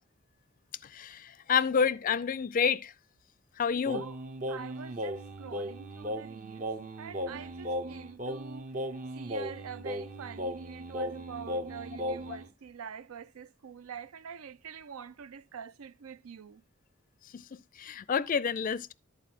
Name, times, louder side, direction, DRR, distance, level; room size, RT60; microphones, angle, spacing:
voice 1, 0.9-2.9 3.6-4.0 17.3-18.9, left 6 dB, 40° left, 0.4 m, -29 dB
voice 2, 3.7-4.2 4.5-6.7 7.0-8.7 9.1-16.6, right 7 dB, 85° right, 0.5 m, -45 dB
Singing, 3.9-12.5, equal, 40° right, 0.7 m, -37 dB
11.5 x 4.2 x 5.9 m
head